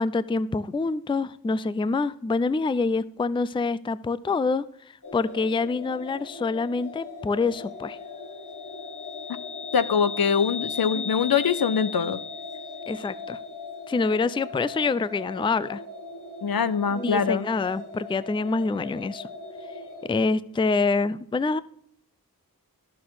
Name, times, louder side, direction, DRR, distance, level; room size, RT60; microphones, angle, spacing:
voice 1, 0.0-4.7 5.1-8.0 10.9-11.1 12.9-13.4 13.9-15.8 17.0-19.3 20.1-21.6, left 4 dB, 15° left, 17 dB, 0.3 m, -26 dB
sound 1, 5.0-20.1, left 4 dB, 55° left, 1.8 m, -38 dB
voice 2, 9.7-12.2 16.4-17.5, left 6 dB, 70° left, 15 dB, 0.6 m, -23 dB
12.0 x 6.7 x 3.9 m, 0.70 s
wide cardioid pair, 45°, 37 cm